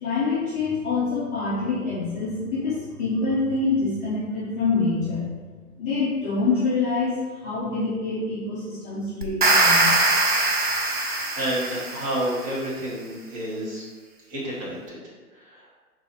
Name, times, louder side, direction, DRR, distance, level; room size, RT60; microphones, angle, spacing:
voice 1, 0.0-5.4 5.8-9.9, left 3 dB, 15° left, -11 dB, 0.7 m, -26 dB
sound 1, 9.2-12.4, right 2 dB, 35° right, 0.4 m, -22 dB
voice 2, 11.0-13.8 14.3-15.0 15.3-15.7, right 1 dB, 20° right, -6 dB, 1.0 m, -30 dB
3.9 x 2.7 x 4.4 m, 1.4 s
figure-of-eight pair, 130°, 45 cm